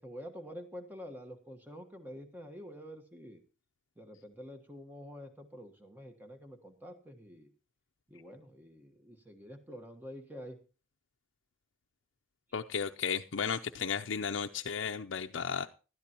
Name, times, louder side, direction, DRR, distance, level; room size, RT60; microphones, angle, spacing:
voice 1, 0.0-3.4 4.0-7.5 8.1-10.6, equal, 10° right, 5 dB, 1.3 m, -48 dB
voice 2, 12.5-15.7, left 6 dB, 80° left, 4 dB, 0.6 m, -34 dB
19.0 x 12.5 x 2.9 m, 0.34 s
head